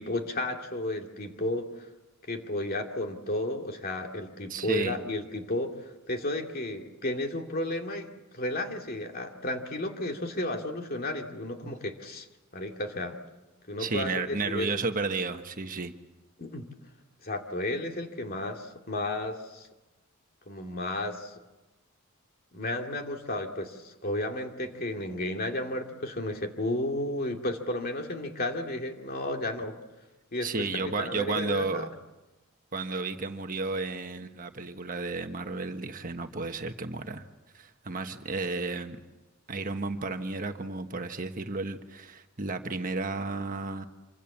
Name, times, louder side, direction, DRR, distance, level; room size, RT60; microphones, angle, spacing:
voice 1, 0.0-1.7 2.3-12.3 12.5-13.2 13.7-14.7 16.4-16.7 17.2-19.7 20.5-21.3 22.5-29.8 30.3-31.9, left 1 dB, 45° left, 3 dB, 2.5 m, -33 dB
voice 2, 4.5-5.0 11.6-11.7 13.8-15.9 30.4-31.9 32.7-37.3 37.5-39.0 39.5-43.9, right 3 dB, 40° right, 6 dB, 1.3 m, -32 dB
26.5 x 25.0 x 7.3 m, 1.1 s
head